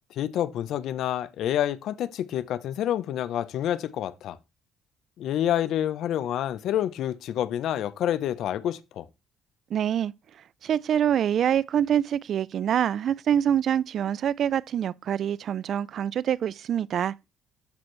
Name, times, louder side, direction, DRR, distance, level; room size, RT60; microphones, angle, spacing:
voice 1, 0.1-4.4 5.2-9.1, left 11 dB, 60° left, 0.6 m, -28 dB
voice 2, 9.7-10.1 10.6-17.1, right 9 dB, 45° right, 0.3 m, -25 dB
13.0 x 4.4 x 3.2 m
cardioid pair, 155°, 0 cm